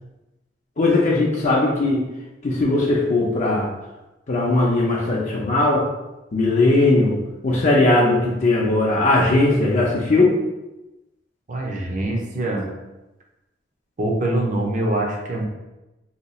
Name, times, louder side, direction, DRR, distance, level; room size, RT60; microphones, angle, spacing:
voice 1, 0.8-2.0 2.4-3.7 4.3-5.9 6.3-7.2 7.4-10.4, left 2 dB, 40° left, -4 dB, 0.5 m, -18 dB
voice 2, 11.5-12.7 14.0-15.5, right 1 dB, 45° right, -1 dB, 0.6 m, -24 dB
2.8 x 2.3 x 4.0 m, 1.0 s
head